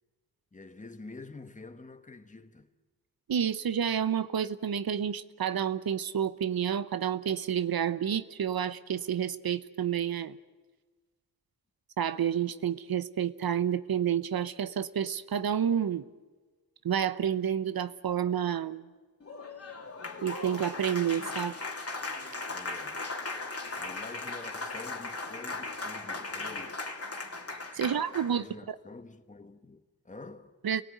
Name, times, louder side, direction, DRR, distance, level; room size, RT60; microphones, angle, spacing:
voice 1, 0.5-2.7 22.5-23.0 23.7-26.9 27.8-28.0 28.3-30.5, left 3 dB, 20° left, 1.5 m, -47 dB
voice 2, 3.3-10.4 12.0-16.1 16.8-18.9 20.2-21.6 27.5-28.4 30.6-30.8, right 9 dB, 70° right, 0.9 m, -29 dB
Applause, 19.2-28.4, left 3 dB, 40° left, 2.9 m, -38 dB
27.5 x 18.0 x 9.5 m
cardioid pair, 75°, 37 cm